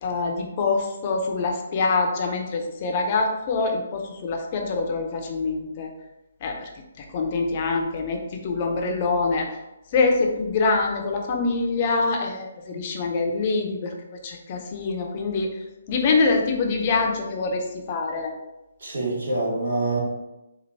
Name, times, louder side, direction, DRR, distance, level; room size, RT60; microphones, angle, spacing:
voice 1, 0.0-5.9 6.4-6.7 7.0-9.5 9.9-13.9 14.2-15.5 15.9-18.3, left 3 dB, 40° left, 2 dB, 0.7 m, -25 dB
voice 2, 18.8-20.0, right 2 dB, 70° right, -3 dB, 1.5 m, -26 dB
4.4 x 2.6 x 4.0 m, 0.97 s
hypercardioid pair, 150°, 0 cm